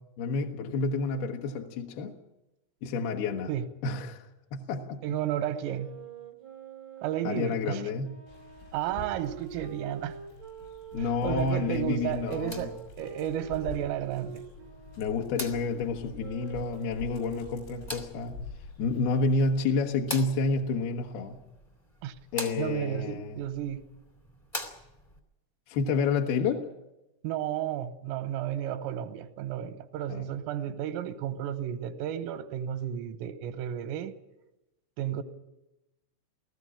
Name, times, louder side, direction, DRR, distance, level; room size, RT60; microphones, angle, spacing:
voice 1, 0.0-2.1 2.8-3.5 3.8-5.0 7.2-8.2 10.9-12.7 15.0-18.4 18.8-21.4 22.3-23.4 25.7-26.7 30.1-30.3 30.7-30.8, left 4 dB, 70° left, 2.5 m, -29 dB
voice 2, 5.0-5.9 7.0-7.8 8.7-10.2 11.0-14.4 22.0-22.2 22.6-23.8 27.2-34.1 35.0-35.2, right 11 dB, 90° right, 3.6 m, -33 dB
Wind instrument woodwind instrument, 5.6-11.4 12.2-18.0, right 8 dB, 50° right, 1.0 m, -46 dB
Dog, 8.3-19.6, left 3 dB, 90° left, 8.4 m, -46 dB
sound 1, 12.1-25.2, left 1 dB, 30° left, 0.6 m, -45 dB
19.5 x 14.5 x 9.9 m
omnidirectional pair, 5.8 m